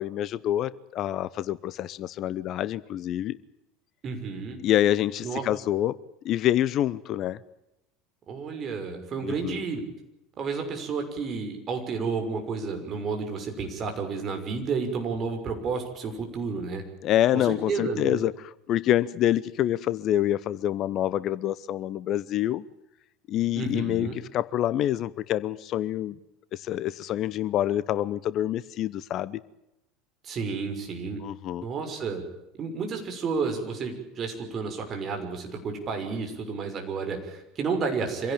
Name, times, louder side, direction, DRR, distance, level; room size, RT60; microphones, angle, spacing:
voice 1, 0.0-3.4 4.6-6.0 6.2-7.4 9.2-9.6 17.0-22.6 23.3-26.2 26.5-29.4 31.2-31.7, left 12 dB, 45° left, 0.8 m, -26 dB
voice 2, 4.0-4.6 5.2-5.4 8.3-9.8 10.4-16.8 17.3-18.2 23.6-24.2 30.2-31.2 31.6-32.2 32.6-38.3, right 5 dB, 35° right, 6.1 m, -31 dB
25.5 x 17.0 x 8.9 m
figure-of-eight pair, 70°, 0 cm